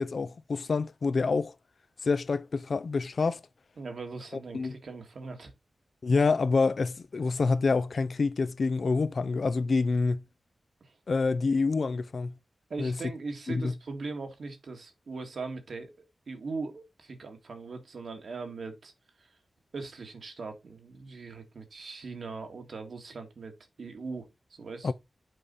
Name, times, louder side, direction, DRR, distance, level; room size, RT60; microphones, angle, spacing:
voice 1, 0.0-1.5 2.0-3.4 4.5-4.7 6.0-10.2 11.1-12.3 12.8-13.0 13.5-13.7 24.8-24.9, left 4 dB, 55° left, 0.5 m, -27 dB
voice 2, 3.8-5.5 10.8-11.0 12.7-18.9 19.2-19.4 19.7-24.9, right 4 dB, 65° right, 1.9 m, -40 dB
7.6 x 5.0 x 4.0 m
wide cardioid pair, 125°, 0 cm